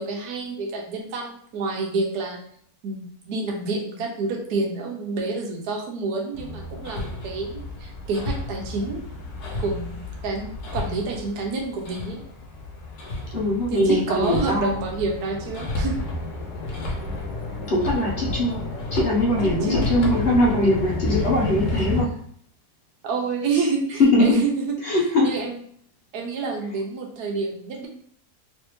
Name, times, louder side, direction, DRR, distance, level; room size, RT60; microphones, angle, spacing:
voice 1, 0.0-2.4 2.8-9.0 9.6-12.2 13.7-16.0 19.4-19.8 23.0-24.6 25.2-25.6 26.1-27.9, right 3 dB, 90° right, 1 dB, 1.3 m, -28 dB
Hammer, 6.3-22.0, left 2 dB, 85° left, 1.3 m, -31 dB
voice 2, 13.3-14.8 17.7-18.6 18.9-22.1 24.0-24.5 24.8-25.3, left 1 dB, 50° left, -3 dB, 0.9 m, -21 dB
3.3 x 3.2 x 3.0 m, 0.63 s
omnidirectional pair, 1.6 m